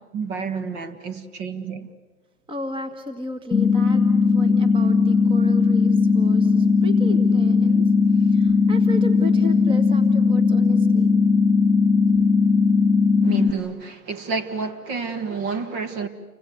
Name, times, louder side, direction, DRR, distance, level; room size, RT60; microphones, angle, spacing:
voice 1, 0.1-1.9 13.2-16.1, right 5 dB, 35° right, 2.0 m, -29 dB
voice 2, 2.5-11.2 12.1-12.2, equal, 10° right, 1.7 m, -35 dB
sound 1, 3.5-13.5, left 4 dB, 5° left, 2.4 m, -18 dB
29.5 x 25.0 x 8.0 m
hypercardioid pair, 130°, 45 cm